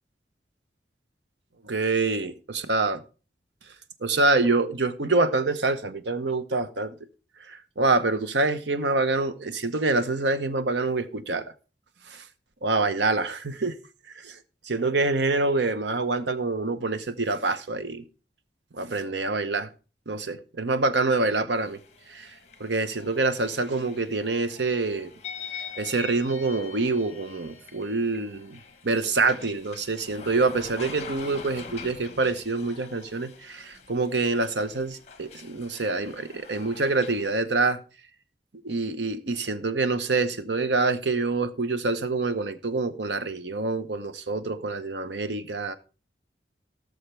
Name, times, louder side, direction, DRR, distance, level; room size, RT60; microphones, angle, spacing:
voice 1, 1.6-3.0 4.0-6.9 7.4-11.4 12.1-12.2 12.6-13.7 14.1-14.4 14.6-18.0 18.7-19.7 20.1-21.8 22.1-22.3 22.6-25.1 25.8-28.6 28.8-37.8 38.6-45.7, right 3 dB, 80° right, 0.9 m, -26 dB
sound 1, 21.5-37.3, left 5 dB, 40° left, 1.3 m, -44 dB
17.5 x 6.5 x 3.3 m
head